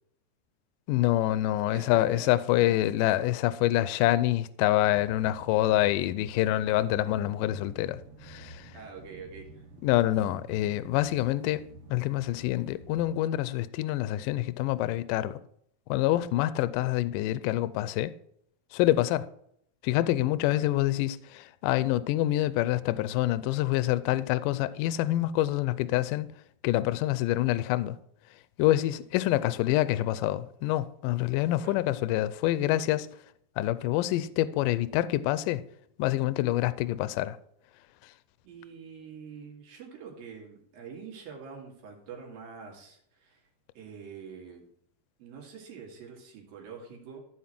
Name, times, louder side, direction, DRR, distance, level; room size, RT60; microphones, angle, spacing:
voice 1, 0.9-8.7 9.8-11.6 11.9-15.4 15.9-18.1 18.7-19.3 19.8-26.3 26.6-28.0 28.6-33.1 33.6-35.6 36.0-37.4, left 15 dB, 80° left, 2.1 m, -26 dB
voice 2, 1.7-2.3 2.6-2.9 8.7-9.7 20.4-20.7 31.6-31.8 38.4-43.4 43.8-44.7 45.2-47.2, right 6 dB, 90° right, 3.9 m, -45 dB
sound 1, 4.8-13.1, right 2 dB, 55° right, 1.8 m, -50 dB
14.0 x 4.9 x 5.9 m
omnidirectional pair, 4.0 m